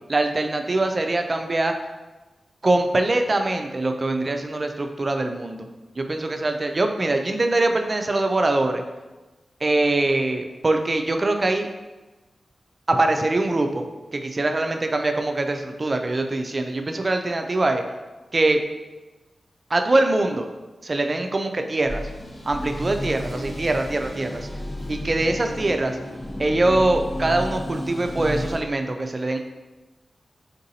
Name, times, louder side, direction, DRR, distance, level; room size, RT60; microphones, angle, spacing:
voice 1, 0.1-1.7 2.6-5.7 6.0-8.8 9.6-11.7 12.9-13.8 14.1-17.8 18.3-18.6 19.7-20.5 20.8-22.0 22.5-24.5 24.9-26.0 26.4-29.4, right 2 dB, 40° right, 5 dB, 0.3 m, -23 dB
sound 1, 21.9-28.6, left 1 dB, 30° left, 0.8 m, -32 dB
3.7 x 2.6 x 2.7 m, 1.1 s
cardioid pair, 60°, 0 cm